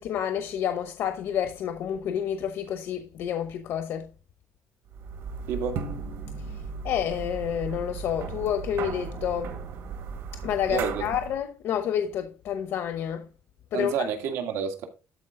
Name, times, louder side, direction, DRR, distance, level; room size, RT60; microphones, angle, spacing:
voice 1, 0.0-4.1 6.8-9.6 10.4-13.3 13.7-14.0, left 9 dB, 60° left, 0.9 m, -29 dB
sound 1, 4.9-11.4, right 5 dB, 65° right, 1.8 m, -36 dB
voice 2, 5.5-5.8 10.7-11.0 13.7-14.9, right 6 dB, 90° right, 1.9 m, -29 dB
12.5 x 4.7 x 3.7 m
cardioid pair, 175°, 5 cm